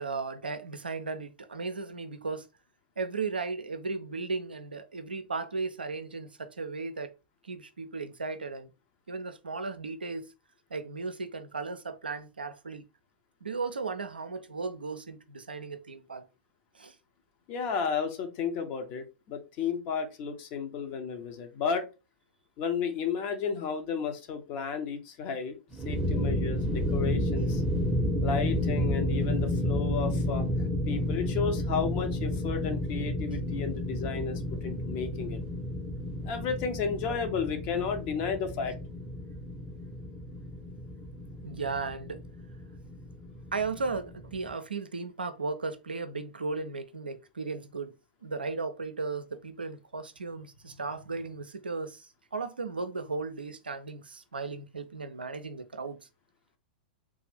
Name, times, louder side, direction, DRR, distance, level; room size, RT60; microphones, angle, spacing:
voice 1, 0.0-2.4 3.0-7.1 7.4-8.7 9.1-10.3 10.7-12.8 13.4-16.2 16.7-16.9 41.4-42.2 43.5-47.9 48.2-56.0, right 4 dB, 80° right, 0.4 m, -36 dB
voice 2, 17.5-21.9 22.6-25.6 25.8-27.6 28.2-30.4 30.8-35.4 36.2-38.7, left 6 dB, 40° left, 0.8 m, -33 dB
sound 1, 25.7-44.5, left 1 dB, 10° right, 0.7 m, -31 dB
3.5 x 2.5 x 3.3 m
figure-of-eight pair, 100°, 5 cm